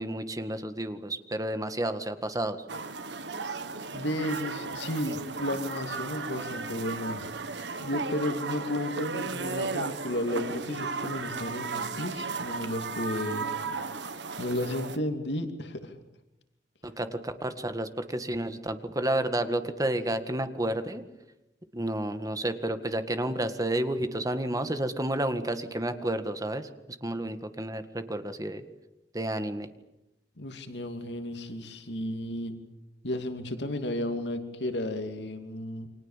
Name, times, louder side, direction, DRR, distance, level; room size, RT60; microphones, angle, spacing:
voice 1, 0.0-2.6 16.8-21.0 21.7-26.7 27.0-28.6 29.1-29.7, right 1 dB, 20° right, 9 dB, 1.9 m, -31 dB
sound 1, 2.7-15.0, right 4 dB, 85° right, 1.7 m, -35 dB
voice 2, 3.9-7.3 7.8-13.5 14.4-15.9 30.4-32.6 33.0-35.9, left 1 dB, 75° left, 7 dB, 2.6 m, -33 dB
29.5 x 24.5 x 7.5 m, 0.92 s
head